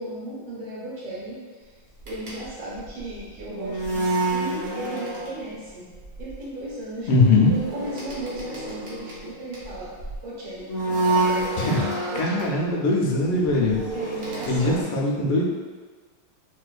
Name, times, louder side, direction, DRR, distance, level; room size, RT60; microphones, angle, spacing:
voice 1, 0.0-1.4 1.6-1.7 2.1-5.9 6.2-7.1 7.5-9.9 10.2-12.6 13.9-14.9, right 1 dB, 85° right, -7 dB, 2.0 m, -36 dB
sound 1, 2.0-5.7 5.9-6.3 7.1-10.1 10.6-12.5 13.2-14.8, right 2 dB, 60° right, 0.7 m, -28 dB
voice 2, 7.1-7.5 11.6-11.9 12.2-13.8 14.5-15.4, left 2 dB, 85° left, -2 dB, 1.5 m, -21 dB
4.3 x 2.4 x 2.2 m, 1.4 s
omnidirectional pair, 2.3 m